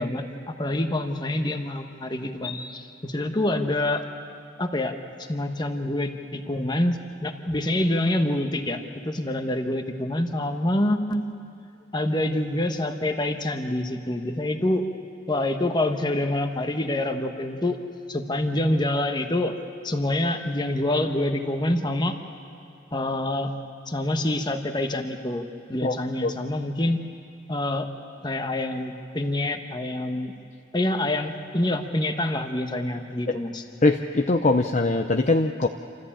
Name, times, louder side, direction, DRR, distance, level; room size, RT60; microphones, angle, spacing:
voice 1, 0.0-4.0 4.6-5.0 5.3-11.3 11.9-14.9 15.3-17.8 18.1-19.5 19.8-22.1 22.9-23.5 23.9-27.0 27.5-27.9 28.2-30.3 30.7-33.6, left 1 dB, 25° left, 6 dB, 1.2 m, -26 dB
voice 2, 33.8-35.7, left 2 dB, 40° left, 4 dB, 0.6 m, -21 dB
27.5 x 14.0 x 8.8 m, 2.4 s
head